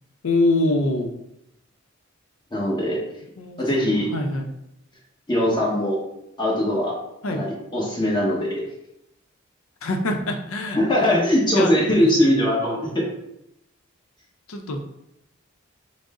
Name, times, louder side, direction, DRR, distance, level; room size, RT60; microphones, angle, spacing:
voice 1, 0.2-1.1 3.4-4.5 7.2-7.4 9.8-11.1 11.5-12.1 14.5-14.9, left 2 dB, 85° left, 5 dB, 0.6 m, -25 dB
voice 2, 2.5-3.0 3.6-4.1 5.3-6.0 6.4-6.9 7.3-8.6 10.7-13.1, left 1 dB, 20° left, -4 dB, 1.1 m, -21 dB
6.1 x 2.0 x 3.7 m, 0.81 s
head